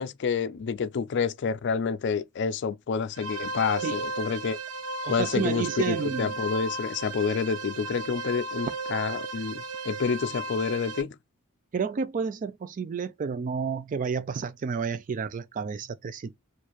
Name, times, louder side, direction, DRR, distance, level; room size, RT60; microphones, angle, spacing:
voice 1, 0.0-4.6 5.1-11.1, left 5 dB, 55° left, 0.4 m, -28 dB
sound 1, 3.1-11.0, right 3 dB, 90° right, 0.9 m, -35 dB
voice 2, 5.0-6.4 11.7-16.3, right 5 dB, 40° right, 0.3 m, -30 dB
4.5 x 2.5 x 2.9 m
head